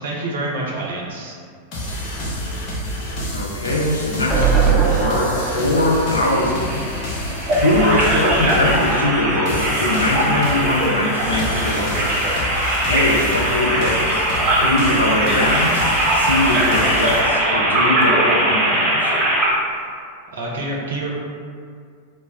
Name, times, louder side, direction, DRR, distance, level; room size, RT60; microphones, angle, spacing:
voice 1, 0.0-1.4 20.3-21.1, right 2 dB, 60° right, -3 dB, 0.5 m, -27 dB
sound 1, 1.7-17.2, left 1 dB, 40° left, 0.7 m, -29 dB
voice 2, 3.3-6.9 7.6-12.0 12.9-14.3 14.6-15.8 16.1-19.1, left 1 dB, 80° left, -2 dB, 0.4 m, -21 dB
sound 2, 4.3-7.5 7.9-8.0 8.2-8.3, right 6 dB, ahead, 0.6 m, -21 dB
sound 3, 6.2-19.5, right 1 dB, 35° right, 0.8 m, -20 dB
2.0 x 2.0 x 3.4 m, 2.2 s
figure-of-eight pair, 90°, 0 cm